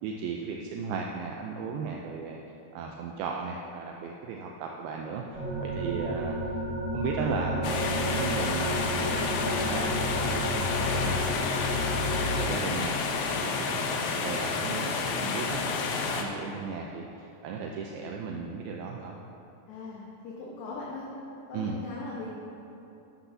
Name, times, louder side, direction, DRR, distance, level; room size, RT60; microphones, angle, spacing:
voice 1, 0.0-2.4 2.7-6.4 6.9-11.5 11.9-19.2 21.5-21.8, right 5 dB, 80° right, 1 dB, 2.2 m, -36 dB
sound 1, 5.3-12.5, equal, 55° right, 1.2 m, -31 dB
sound 2, 7.6-16.2, left 4 dB, 85° left, 3.0 m, -30 dB
voice 2, 19.7-21.1 21.5-22.3, left 3 dB, 65° left, -5 dB, 2.6 m, -39 dB
14.0 x 12.0 x 2.7 m, 2.9 s
omnidirectional pair, 4.9 m